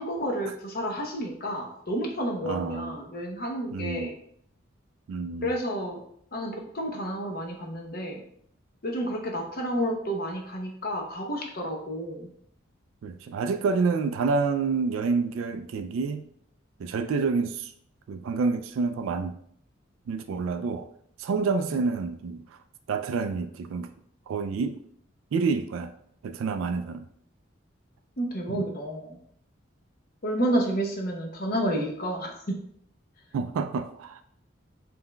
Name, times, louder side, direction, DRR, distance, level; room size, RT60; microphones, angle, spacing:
voice 1, 0.0-4.1 5.4-6.0 6.3-8.2 8.8-12.3 21.6-21.7 28.2-29.2 30.2-32.5, equal, 45° left, 1 dB, 0.8 m, -30 dB
voice 2, 2.4-2.9 3.7-4.2 5.1-5.6 13.0-16.2 16.8-17.7 18.1-19.4 20.1-20.9 21.2-22.4 22.9-23.9 24.3-24.8 25.3-25.9 26.2-27.1 28.5-28.7 33.3-34.2, right 4 dB, 85° right, 7 dB, 0.3 m, -28 dB
5.4 x 3.4 x 2.2 m, 0.67 s
head